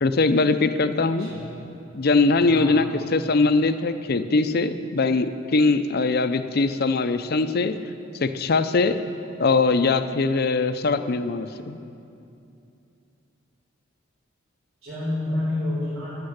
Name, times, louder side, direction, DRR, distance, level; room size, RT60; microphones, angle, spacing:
voice 1, 0.0-1.3 1.9-7.7 8.2-9.0 9.4-11.8, left 3 dB, 50° left, 10 dB, 0.5 m, -21 dB
voice 2, 1.2-1.7 2.4-2.8 14.8-16.1, left 1 dB, 90° right, -10 dB, 3.9 m, -29 dB
13.0 x 6.8 x 9.7 m, 2.7 s
head